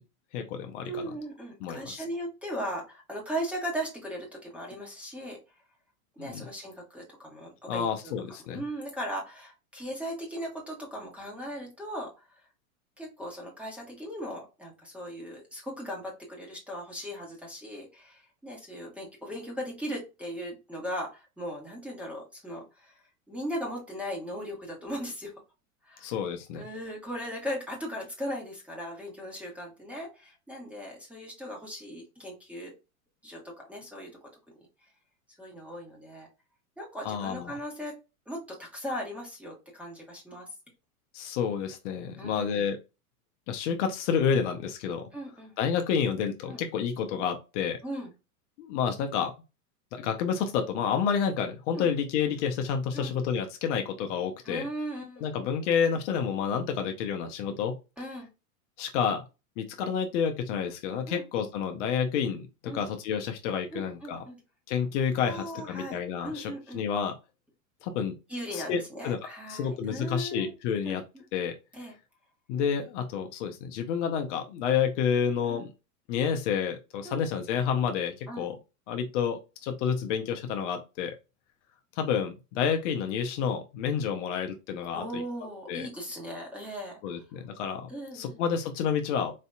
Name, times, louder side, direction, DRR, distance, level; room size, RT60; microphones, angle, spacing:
voice 1, 0.3-1.1 1.6-2.0 6.2-6.4 7.7-8.6 26.0-26.6 37.0-37.5 41.1-42.8 43.5-45.1 45.6-47.8 48.6-49.3 49.9-54.7 55.2-57.8 58.8-59.2 59.6-64.2 64.7-67.1 67.8-68.1 68.5-69.2 69.5-71.0 71.3-71.5 72.5-75.7 76.1-78.5 78.9-81.1 82.0-85.2 85.7-85.9 87.0-89.3, left 7 dB, 55° left, 5 dB, 0.8 m, -29 dB
voice 2, 0.8-5.4 6.2-8.1 8.5-12.1 13.0-25.3 25.8-26.1 26.5-32.7 33.2-34.3 35.4-36.3 36.8-38.0 38.3-40.5 42.2-42.7 45.1-45.5 46.5-46.6 47.8-48.1 51.8-51.9 52.9-53.1 54.4-55.2 58.0-58.3 61.1-61.2 62.7-62.8 63.7-64.4 65.2-66.8 68.3-70.5 70.8-71.0 71.7-71.9 75.5-75.7 77.0-77.2 78.3-78.5 84.9-87.2 87.9-88.4, equal, 5° right, -1 dB, 1.4 m, -38 dB
4.2 x 2.7 x 2.3 m, 0.28 s
hypercardioid pair, 115°, 43 cm